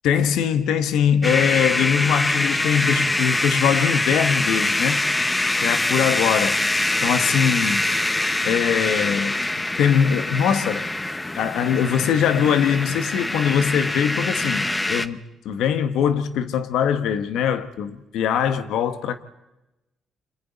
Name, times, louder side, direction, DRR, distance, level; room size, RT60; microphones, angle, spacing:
voice 1, 0.0-5.0 5.6-6.6 7.0-7.9 8.4-9.4 9.8-10.9 11.3-15.2 15.4-19.2, left 8 dB, 85° left, 1.2 m, -22 dB
sound 1, 1.2-15.1, left 2 dB, 15° left, 0.8 m, -24 dB
29.5 x 26.0 x 4.2 m
cardioid pair, 90°, 0 cm